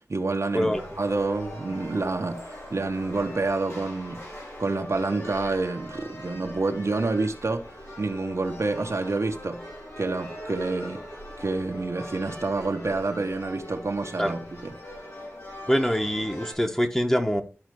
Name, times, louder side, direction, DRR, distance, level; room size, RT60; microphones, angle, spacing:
voice 1, 0.0-4.2 4.6-9.6 10.0-11.0 11.4-14.8, right 3 dB, 80° right, 1.3 m, -28 dB
sound 1, 0.7-16.5, equal, 70° left, 5.0 m, -41 dB
voice 2, 15.7-17.4, equal, 10° left, 1.3 m, -24 dB
13.0 x 4.9 x 3.2 m
wide cardioid pair, 65°, 5 cm